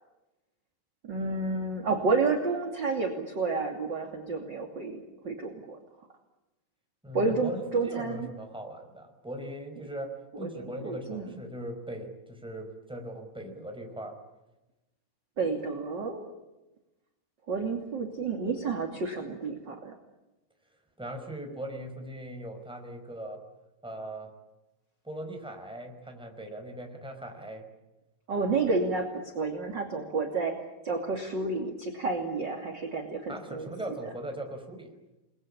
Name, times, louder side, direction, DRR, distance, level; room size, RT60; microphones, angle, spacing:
voice 1, 1.0-5.8 7.1-8.3 10.3-11.4 15.4-16.4 17.5-19.9 28.3-33.7, right 3 dB, 30° right, 3 dB, 2.8 m, -30 dB
voice 2, 7.0-10.1 10.4-14.1 21.0-23.4 23.8-24.3 25.0-27.7 33.3-34.9, right 1 dB, ahead, 3 dB, 4.6 m, -39 dB
29.5 x 21.5 x 8.8 m, 1.0 s
omnidirectional pair, 4.3 m